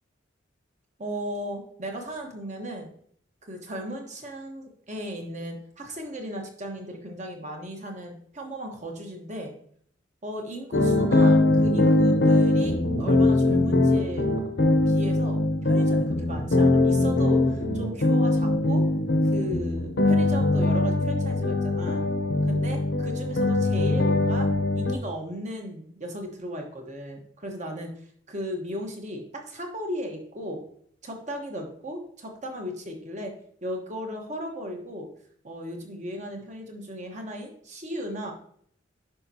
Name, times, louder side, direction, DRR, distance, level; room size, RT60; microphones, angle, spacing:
voice 1, 1.0-2.9 3.5-9.5 10.2-14.3 14.9-18.8 19.3-22.0 22.5-24.5 24.7-27.9 28.3-30.6 31.0-33.3 33.6-35.1 35.4-38.3, equal, 40° right, 2 dB, 1.2 m, -36 dB
sound 1, 10.7-25.0, left 2 dB, 65° left, 0.8 m, -22 dB
10.5 x 5.2 x 2.9 m, 0.63 s
head